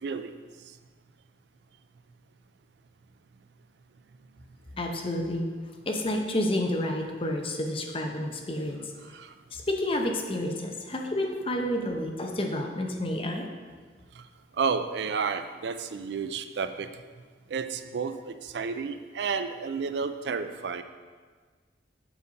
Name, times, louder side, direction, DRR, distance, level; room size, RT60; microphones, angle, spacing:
voice 1, 0.0-0.4 9.1-9.3 14.2-14.3 14.6-16.9 17.5-20.8, right 5 dB, 70° right, 10 dB, 0.4 m, -31 dB
voice 2, 4.8-5.5 5.9-8.9 9.5-13.5, left 1 dB, 30° left, 2 dB, 0.7 m, -30 dB
7.9 x 5.3 x 4.0 m, 1.5 s
head